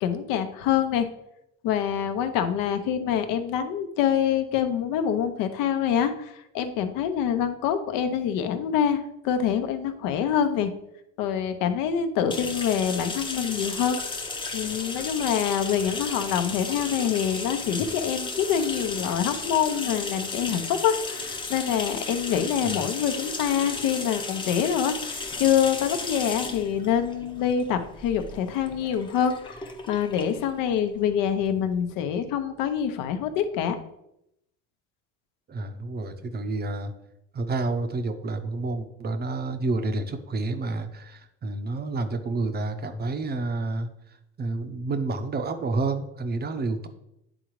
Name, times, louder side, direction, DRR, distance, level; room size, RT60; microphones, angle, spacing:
voice 1, 0.0-1.1 1.6-10.7 11.2-14.0 14.5-29.6 29.9-33.8, left 8 dB, 65° left, 8 dB, 0.9 m, -25 dB
sound 1, 12.3-31.7, left 3 dB, 15° left, 0.7 m, -34 dB
voice 2, 35.5-36.9 37.3-43.9 44.4-46.9, right 3 dB, 25° right, 8 dB, 0.7 m, -29 dB
9.8 x 3.8 x 3.1 m, 0.82 s
supercardioid pair, 105°, 36 cm